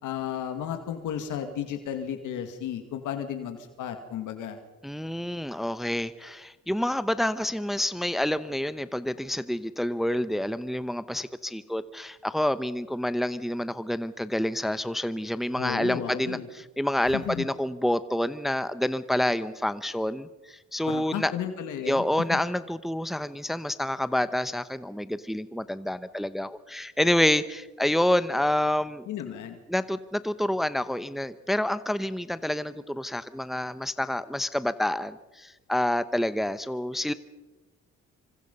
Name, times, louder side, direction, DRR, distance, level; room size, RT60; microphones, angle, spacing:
voice 1, 0.0-4.6 15.6-16.5 17.1-17.5 20.9-22.0 22.3-22.4 29.1-29.6, left 9 dB, 85° left, 7 dB, 2.3 m, -33 dB
voice 2, 4.8-16.4 16.8-21.3 21.9-29.1 29.7-37.1, left 1 dB, ahead, 13 dB, 0.9 m, -28 dB
25.5 x 25.5 x 5.5 m, 1.1 s
cardioid pair, 90°, 30 cm